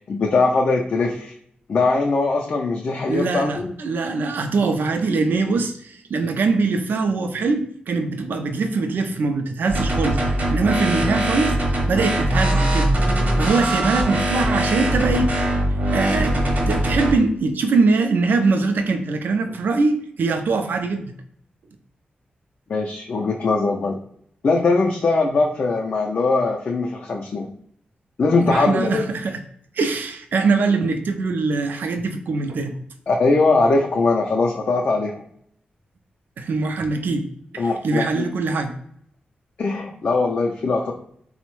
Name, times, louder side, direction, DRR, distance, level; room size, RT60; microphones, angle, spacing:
voice 1, 0.1-1.3 1.7-3.7 22.7-24.0 24.4-27.5 28.2-29.0 33.1-35.1 37.6-38.3 39.6-40.9, left 3 dB, 55° left, 0 dB, 0.4 m, -21 dB
voice 2, 3.1-10.2 10.5-12.9 13.2-15.3 15.9-16.4 16.7-21.1 28.4-29.4 29.8-32.7 36.4-37.3 37.5-38.8, right 3 dB, 75° right, 6 dB, 0.4 m, -22 dB
sound 1, 9.7-17.1, right 1 dB, 55° right, 0.8 m, -21 dB
3.5 x 2.0 x 3.0 m, 0.66 s
wide cardioid pair, 100°, 3 cm